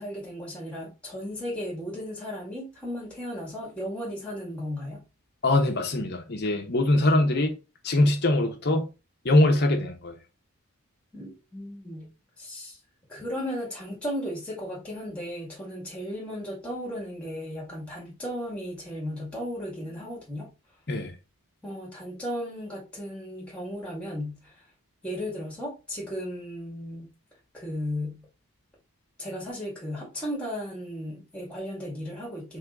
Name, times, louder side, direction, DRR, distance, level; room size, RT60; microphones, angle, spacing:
voice 1, 0.0-5.0 11.1-12.1 12.4-12.8 13.1-20.5 21.6-24.5 25.0-27.1 27.5-28.2 29.2-32.6, equal, 5° left, 2.1 m, -35 dB
voice 2, 5.4-7.5 7.8-8.9 9.2-10.2 20.9-21.1, left 1 dB, 50° left, 1.0 m, -22 dB
3.8 x 3.6 x 3.9 m
head